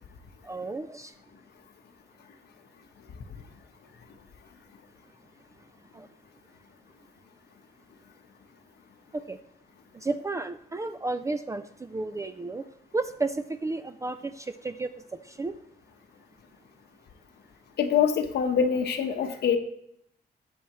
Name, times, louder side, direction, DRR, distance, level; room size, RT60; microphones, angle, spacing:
voice 1, 0.4-1.1 5.9-6.1 9.1-9.4 9.9-12.6 12.9-14.9 15.2-15.6, right 3 dB, 20° right, 9 dB, 0.4 m, -32 dB
voice 2, 17.8-19.6, left 7 dB, 85° left, 5 dB, 1.2 m, -24 dB
19.5 x 7.0 x 3.1 m, 0.73 s
wide cardioid pair, 150°, 17 cm